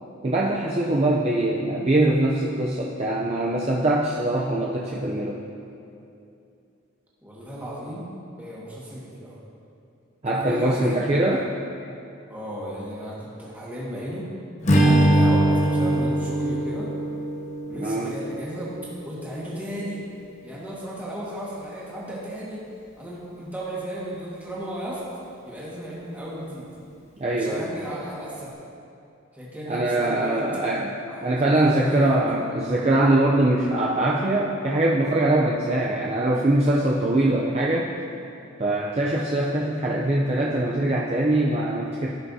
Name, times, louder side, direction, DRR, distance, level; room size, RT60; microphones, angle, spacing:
voice 1, 0.2-5.4 10.2-11.5 17.7-18.2 27.2-27.9 29.7-37.9 38.6-42.1, right 1 dB, 30° right, -3 dB, 0.5 m, -22 dB
voice 2, 7.2-8.1 8.4-9.4 10.3-11.4 12.3-14.3 14.7-16.9 17.6-18.7 19.0-20.0 20.4-22.6 23.0-25.0 25.4-26.7 27.3-28.5 29.3-30.4 31.1-32.1, equal, 10° right, -7 dB, 1.7 m, -35 dB
Strum, 14.6-19.1, right 1 dB, 35° left, 0.7 m, -22 dB
16.0 x 5.8 x 2.7 m, 2.6 s
head